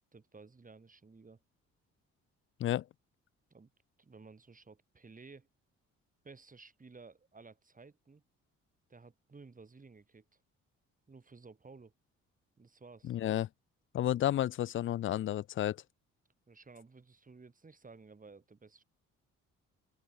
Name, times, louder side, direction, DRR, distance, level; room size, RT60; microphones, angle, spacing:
voice 1, 0.1-1.4 3.5-3.7 4.0-5.5 6.2-8.2 8.9-10.2 11.1-11.9 12.6-13.2 16.5-18.8, right 4 dB, 25° right, 6.1 m, -55 dB
voice 2, 13.1-13.5 13.9-15.8, left 12 dB, 45° left, 0.4 m, -31 dB
open air
cardioid pair, 90°, 30 cm